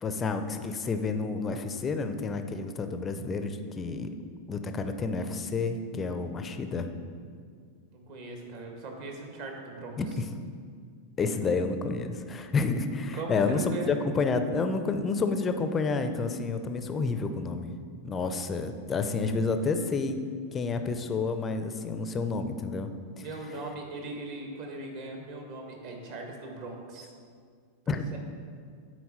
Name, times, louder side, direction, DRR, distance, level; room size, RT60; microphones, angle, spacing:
voice 1, 0.0-4.1 4.5-6.9 10.0-10.2 11.2-17.7 18.0-20.2 20.5-22.9 23.2-23.3 27.9-28.2, left 4 dB, 20° left, 8 dB, 0.5 m, -30 dB
voice 2, 7.9-10.0 13.1-13.9 23.2-27.1 28.1-28.2, right 3 dB, 50° right, 1 dB, 1.4 m, -39 dB
9.3 x 4.5 x 4.1 m, 2.1 s
figure-of-eight pair, 90°, 0 cm